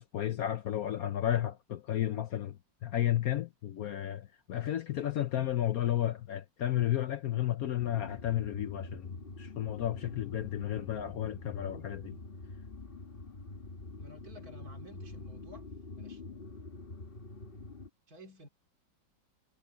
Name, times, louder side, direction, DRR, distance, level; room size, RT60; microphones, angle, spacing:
voice 1, 0.0-12.2, left 12 dB, 65° left, 1.0 m, -33 dB
sound 1, 7.8-17.9, left 3 dB, 30° left, 1.5 m, -46 dB
voice 2, 14.0-15.7 16.0-16.2 18.1-18.5, equal, 50° right, 3.1 m, -52 dB
omnidirectional pair, 2.0 m